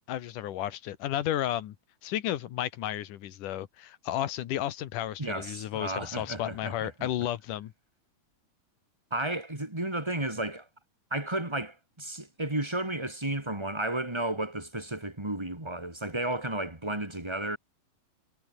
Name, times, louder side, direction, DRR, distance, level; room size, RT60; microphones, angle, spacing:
voice 1, 0.0-1.8 2.0-7.7, left 12 dB, 65° left, 2.6 m, -33 dB
voice 2, 5.2-7.1 9.1-10.7 11.1-17.6, right 1 dB, 10° right, 2.4 m, -33 dB
omnidirectional pair, 4.3 m